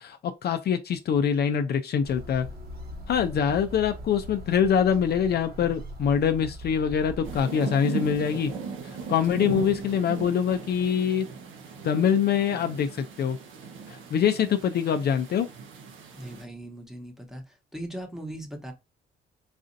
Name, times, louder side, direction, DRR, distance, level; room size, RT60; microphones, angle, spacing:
voice 1, 0.0-2.5 3.1-8.5 9.1-11.3 11.8-13.4 13.9-15.5, left 8 dB, 55° left, 0.4 m, -24 dB
sound 1, 2.0-7.4, equal, 50° right, 1.1 m, -40 dB
sound 2, 7.2-16.4, right 5 dB, 85° right, 0.8 m, -38 dB
voice 2, 16.1-18.7, right 1 dB, ahead, 1.0 m, -39 dB
4.1 x 2.5 x 2.6 m
cardioid pair, 90°, 20 cm